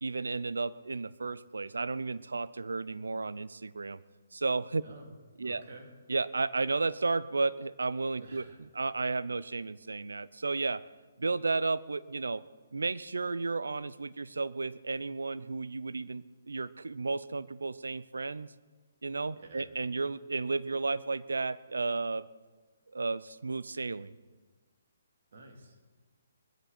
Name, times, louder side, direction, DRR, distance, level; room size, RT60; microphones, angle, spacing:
voice 1, 0.0-4.0 4.3-4.8 5.4-5.6 6.1-10.8 11.2-12.4 12.7-18.5 19.0-22.3 22.9-24.1, right 3 dB, 80° right, 17 dB, 0.6 m, -33 dB
voice 2, 5.4-5.9 8.2-8.6 19.4-19.7 25.3-25.8, right 2 dB, 60° right, 1 dB, 3.5 m, -50 dB
20.5 x 13.5 x 4.4 m, 1.3 s
figure-of-eight pair, 140°, 0 cm